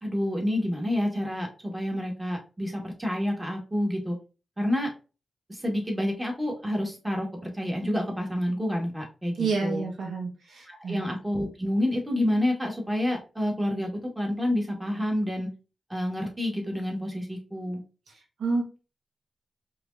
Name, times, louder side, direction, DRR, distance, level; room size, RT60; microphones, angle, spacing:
voice 1, 0.0-4.2 4.6-4.9 5.5-9.8 10.7-15.5 15.9-17.8, left 1 dB, 15° right, 0 dB, 1.7 m, -28 dB
voice 2, 9.4-11.1 18.4-18.8, right 4 dB, 90° right, 0 dB, 1.2 m, -29 dB
4.8 x 3.1 x 2.6 m, 0.32 s
cardioid pair, 75°, 0 cm